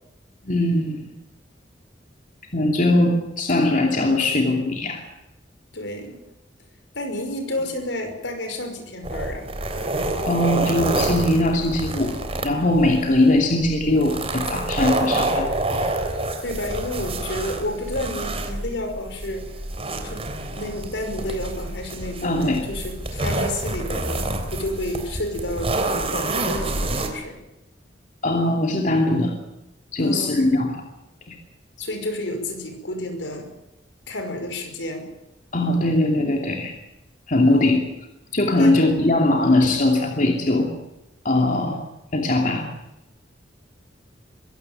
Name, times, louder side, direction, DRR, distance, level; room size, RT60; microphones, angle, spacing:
voice 1, 0.4-1.1 2.5-5.0 10.2-12.2 12.4-15.5 22.2-22.6 28.2-29.3 29.9-30.7 31.3-31.4 35.5-36.7 37.3-37.8 38.3-40.7 41.2-41.8 42.1-42.7, left 1 dB, 45° left, 3 dB, 2.7 m, -20 dB
voice 2, 5.7-6.2 6.9-9.5 16.4-19.5 20.0-20.3 20.5-25.7 26.1-27.4 30.0-30.5 31.8-33.5 34.1-35.1 37.4-37.8 38.5-38.9, left 1 dB, 75° left, 6 dB, 5.6 m, -30 dB
sound 1, 9.0-27.1, right 2 dB, 35° right, 3.4 m, -28 dB
23.0 x 17.0 x 9.2 m, 0.93 s
head